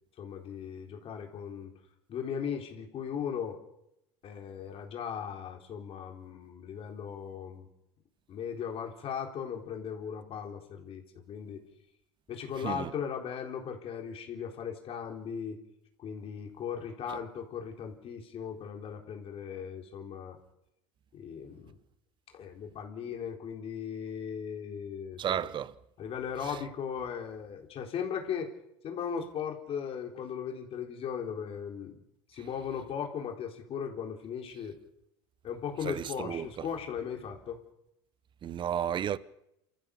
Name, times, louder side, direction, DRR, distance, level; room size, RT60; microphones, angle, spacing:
voice 1, 0.2-1.7 2.1-3.6 4.2-7.7 8.3-11.6 12.3-15.6 16.0-20.4 21.1-21.8 22.3-25.4 26.0-28.5 28.8-32.0 32.3-34.8 35.4-37.6, left 7 dB, 45° left, 4.0 m, -38 dB
voice 2, 12.6-12.9 25.2-25.7 26.5-26.6 35.8-36.7 38.4-39.2, right 9 dB, 35° right, 0.9 m, -33 dB
27.5 x 14.5 x 7.1 m
supercardioid pair, 110°, 14 cm